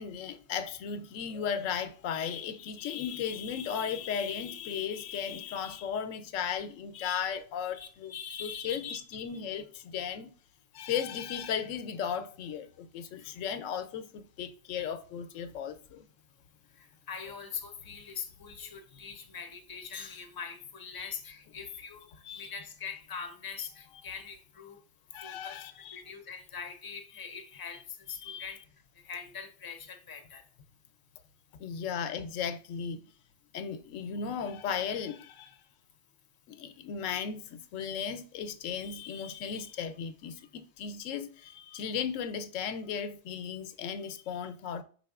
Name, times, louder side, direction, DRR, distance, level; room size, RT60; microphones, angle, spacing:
voice 1, 0.0-8.1 8.4-10.3 10.7-16.1 20.9-21.1 22.2-22.5 25.1-26.0 28.2-28.5 31.6-33.0 33.5-35.5 36.5-44.8, left 7 dB, 90° left, 0.9 m, -36 dB
voice 2, 7.7-9.3 13.2-13.3 16.8-22.1 22.3-24.8 25.2-27.8 28.1-28.6 29.0-30.4, left 6 dB, 25° left, 0.5 m, -42 dB
5.4 x 4.0 x 2.3 m
omnidirectional pair, 1.3 m